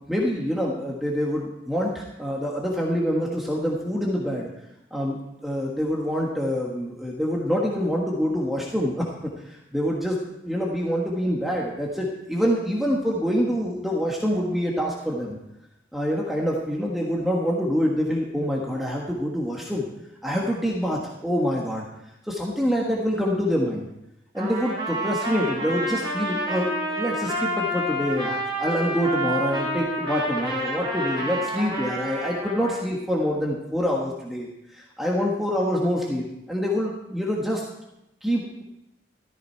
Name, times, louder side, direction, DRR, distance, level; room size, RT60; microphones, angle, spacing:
voice 1, 0.1-4.5 4.9-9.1 9.5-10.2 10.4-15.4 15.9-19.8 20.2-21.9 22.3-23.8 24.3-34.5 34.7-37.6 38.2-38.6, equal, ahead, -3 dB, 1.4 m, -26 dB
Trumpet, 24.4-32.8, equal, 25° right, 3.6 m, -29 dB
14.0 x 13.5 x 4.5 m, 0.88 s
head